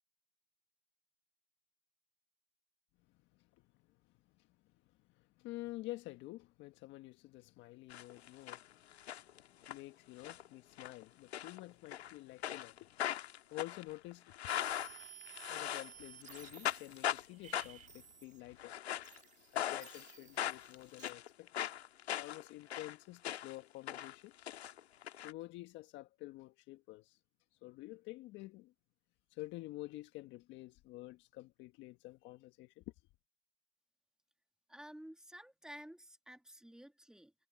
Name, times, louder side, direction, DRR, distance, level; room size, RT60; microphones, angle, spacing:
voice 1, 5.2-8.8 9.1-9.3 9.7-12.9 13.5-14.3 15.5-18.7 19.5-21.7 22.1-24.3 25.2-27.2 27.6-28.7 29.3-32.8, left 18 dB, 35° left, 1.5 m, -49 dB
sound 1, 7.9-8.6 8.9-9.8 10.2-10.5 10.8-11.0 11.3-12.1 12.4-16.0 16.3-17.3 17.5-17.9 18.5-19.2 19.6-20.1 20.4-23.6 23.9-25.3, left 11 dB, 80° left, 1.7 m, -40 dB
sound 2, 14.5-18.6 19.0-21.1, right 9 dB, 20° right, 2.4 m, -56 dB
voice 2, 34.7-37.3, equal, ahead, 2.2 m, -52 dB
hypercardioid pair, 130°, 32 cm